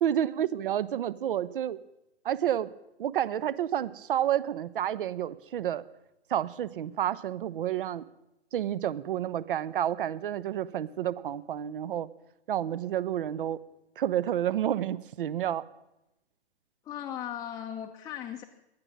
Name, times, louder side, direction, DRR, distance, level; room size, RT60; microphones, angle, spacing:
voice 1, 0.0-1.8 2.2-2.7 3.0-5.8 6.3-8.1 8.5-12.1 12.5-13.6 14.0-15.6, right 11 dB, 50° right, 20 dB, 0.8 m, -30 dB
voice 2, 16.8-18.4, left 10 dB, 10° left, 2 dB, 0.7 m, -37 dB
18.5 x 12.0 x 6.2 m, 0.92 s
figure-of-eight pair, 115°, 33 cm